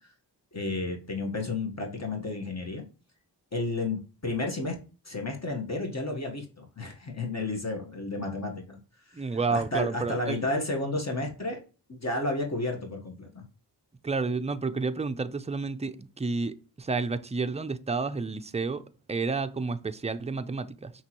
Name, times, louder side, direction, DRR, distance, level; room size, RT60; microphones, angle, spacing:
voice 1, 0.5-2.8 3.5-4.8 5.0-8.8 9.1-11.6 11.9-13.4, left 2 dB, 40° left, 1.3 m, -32 dB
voice 2, 9.1-10.4 14.0-20.9, right 4 dB, 15° right, 0.4 m, -30 dB
5.6 x 3.0 x 2.9 m
cardioid pair, 50°, 42 cm